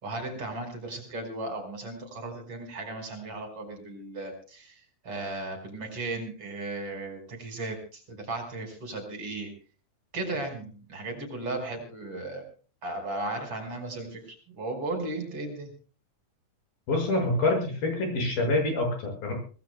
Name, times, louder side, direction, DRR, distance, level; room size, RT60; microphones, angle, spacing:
voice 1, 0.0-9.5 10.1-12.4 12.8-14.2 14.6-15.7, right 2 dB, 40° right, 5 dB, 5.6 m, -36 dB
voice 2, 16.9-19.3, left 2 dB, 85° left, 3 dB, 8.0 m, -26 dB
25.5 x 18.5 x 2.3 m, 0.39 s
omnidirectional pair, 4.1 m